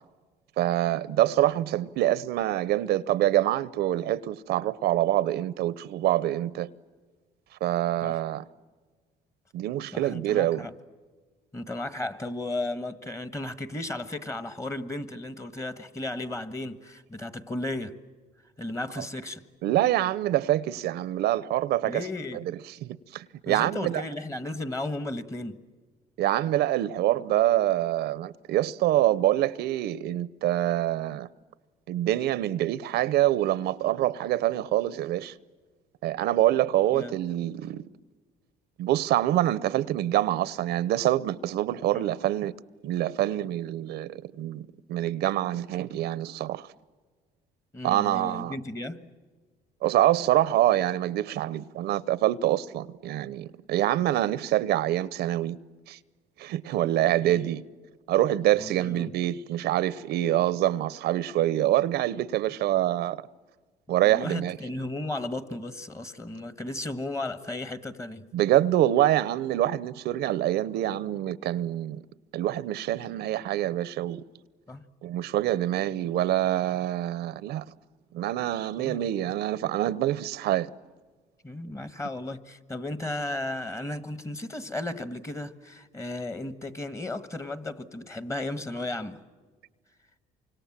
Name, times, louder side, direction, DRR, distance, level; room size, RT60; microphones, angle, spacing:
voice 1, 0.6-6.7 7.6-8.4 9.5-10.7 19.0-19.1 19.6-22.1 22.3-24.0 26.2-31.3 31.9-35.3 36.0-37.9 38.8-42.5 42.8-46.7 47.8-48.5 49.8-55.6 55.9-56.0 56.4-57.6 58.1-63.3 63.9-64.6 68.3-72.0 72.3-74.2 75.0-77.6 78.1-80.7, right 13 dB, 75° right, 0.8 m, -26 dB
voice 2, 9.9-10.7 11.5-18.0 18.6-19.4 21.9-22.4 23.5-25.6 36.9-37.2 41.9-42.1 47.7-49.1 57.2-57.3 58.6-59.1 64.0-68.3 74.7-74.9 78.8-79.0 81.4-89.2, left 2 dB, 15° left, 1.4 m, -35 dB
28.5 x 25.5 x 7.4 m
cardioid pair, 110°, 17 cm